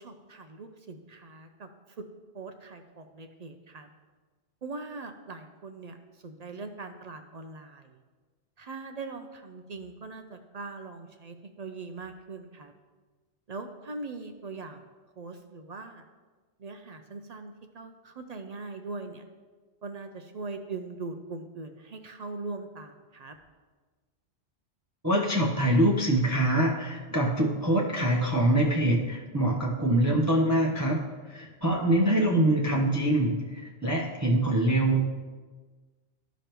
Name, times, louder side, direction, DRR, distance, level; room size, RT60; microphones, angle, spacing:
voice 1, 0.0-2.0 2.3-3.9 4.6-8.0 8.6-12.7 13.5-14.8 15.2-16.0 16.6-19.2 19.8-23.4, right 3 dB, 55° right, 6 dB, 0.5 m, -41 dB
voice 2, 25.0-31.0 31.3-35.2, right 1 dB, 20° right, -2 dB, 0.6 m, -24 dB
13.0 x 5.1 x 3.0 m, 1.4 s
omnidirectional pair, 1.2 m